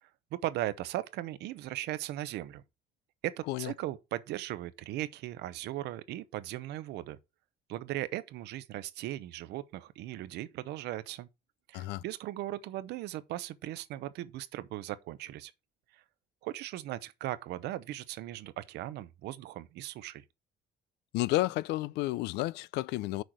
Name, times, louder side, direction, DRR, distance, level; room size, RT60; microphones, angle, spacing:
voice 1, 0.3-2.6 3.2-7.2 7.7-11.3 11.7-15.5 16.4-20.2, right 14 dB, 80° right, 0.7 m, -38 dB
voice 2, 21.1-23.2, left 18 dB, 85° left, 0.4 m, -31 dB
6.3 x 4.5 x 6.3 m
cardioid pair, 110°, 17 cm